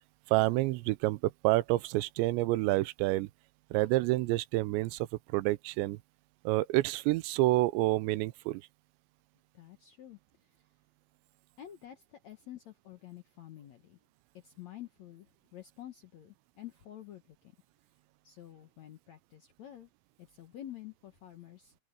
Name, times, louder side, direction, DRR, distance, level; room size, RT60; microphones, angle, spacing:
voice 1, 0.3-3.3 3.7-5.1 5.3-6.0 6.5-8.6, right 18 dB, 90° right, 2.9 m, -28 dB
voice 2, 9.5-10.2 11.6-14.0 14.3-17.6 18.2-19.9 20.2-21.8, left 12 dB, 85° left, 1.5 m, -49 dB
open air
omnidirectional pair, 5.1 m